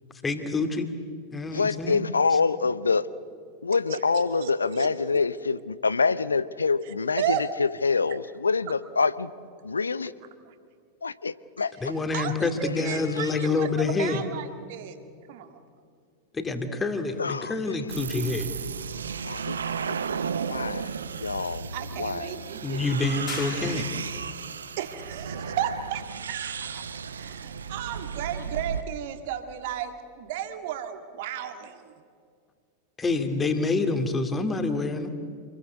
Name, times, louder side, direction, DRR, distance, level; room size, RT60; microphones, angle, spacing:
voice 1, 0.2-0.8 1.3-2.1 11.8-14.2 16.3-18.5 22.6-23.9 33.0-35.1, left 3 dB, 15° left, 7 dB, 2.4 m, -27 dB
voice 2, 1.5-3.1 3.6-9.3 9.6-10.1 11.0-11.7 12.9-13.3 17.2-17.9 19.3-20.0 20.5-20.9 21.2-21.7 22.0-22.3, left 4 dB, 75° left, 17 dB, 0.7 m, -26 dB
voice 3, 3.9-4.9 6.9-7.5 10.5-10.6 11.8-13.7 14.0-15.0 15.3-15.6 21.7-23.1 24.8-26.9 27.1-31.9, right 10 dB, 50° right, 7 dB, 2.0 m, -34 dB
sound 1, 17.9-28.8, right 6 dB, 70° right, 1.0 m, -34 dB
sound 2, 23.3-24.4, left 9 dB, 35° left, 2.7 m, -40 dB
27.5 x 21.5 x 8.2 m, 2.2 s
figure-of-eight pair, 90°, 0 cm